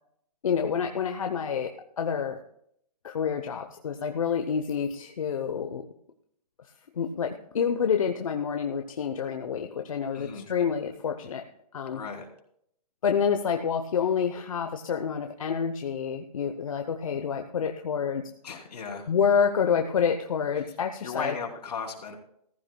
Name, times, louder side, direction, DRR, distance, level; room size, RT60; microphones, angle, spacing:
voice 1, 0.4-2.4 3.0-5.8 7.0-11.4 11.7-12.0 13.0-18.2 19.1-21.4, left 7 dB, 55° left, 5 dB, 0.9 m, -28 dB
voice 2, 10.1-10.5 11.9-12.3 18.4-19.1 21.0-22.1, left 5 dB, 75° left, 2 dB, 3.1 m, -36 dB
15.0 x 14.5 x 2.3 m, 0.69 s
hypercardioid pair, 180°, 21 cm